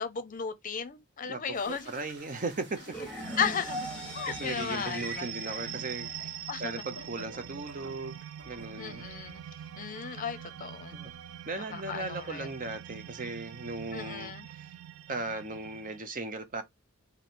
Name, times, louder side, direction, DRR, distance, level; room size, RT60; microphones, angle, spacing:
voice 1, 0.0-1.9 3.4-3.9 4.1-5.3 6.5-6.7 8.8-9.5 9.8-11.0 11.7-12.5 13.9-14.5, left 6 dB, 40° left, 0.6 m, -35 dB
voice 2, 1.2-2.8 4.2-8.2 8.4-9.0 9.5-9.7 10.5-10.6 10.9-11.1 11.5-14.7 15.1-16.6, right 3 dB, 40° right, 0.7 m, -37 dB
sound 1, 1.5-12.5 12.8-14.0, right 2 dB, 55° right, 1.4 m, -52 dB
sound 2, 2.9-6.9, equal, 5° left, 0.9 m, -40 dB
sound 3, 3.2-16.0, right 10 dB, 85° right, 0.4 m, -44 dB
3.2 x 2.7 x 4.2 m
head